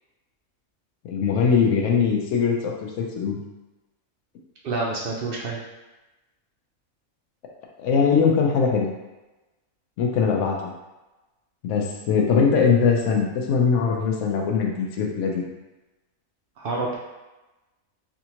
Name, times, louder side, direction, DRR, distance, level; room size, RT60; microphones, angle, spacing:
voice 1, 1.0-3.4 7.8-8.9 10.0-10.7 11.6-15.5, left 5 dB, 70° left, 0 dB, 0.9 m, -21 dB
voice 2, 4.6-5.6 16.6-17.0, right 3 dB, 70° right, -3 dB, 0.5 m, -27 dB
3.5 x 2.6 x 2.8 m, 1.1 s
omnidirectional pair, 1.5 m